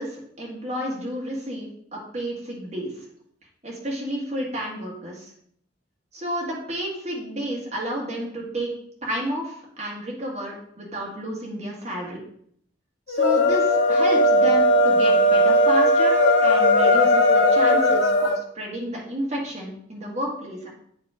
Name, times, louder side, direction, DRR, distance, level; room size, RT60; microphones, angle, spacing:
voice 1, 0.0-2.9 3.6-5.3 6.1-8.7 9.0-12.2 13.1-20.7, equal, 35° right, -3 dB, 1.9 m, -31 dB
sound 1, 13.1-18.4, left 1 dB, 80° left, 0.7 m, -18 dB
8.2 x 3.2 x 4.9 m, 0.66 s
head